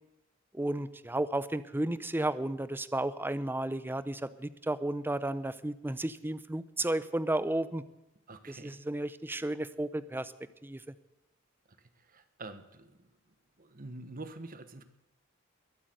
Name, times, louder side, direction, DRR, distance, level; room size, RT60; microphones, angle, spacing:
voice 1, 0.5-7.8 8.5-10.3 10.6-10.8, right 1 dB, 10° right, 15 dB, 0.6 m, -33 dB
voice 2, 8.3-8.8 11.7-13.1 13.6-14.8, right 2 dB, 45° right, 11 dB, 1.3 m, -46 dB
22.0 x 8.3 x 7.8 m, 0.93 s
head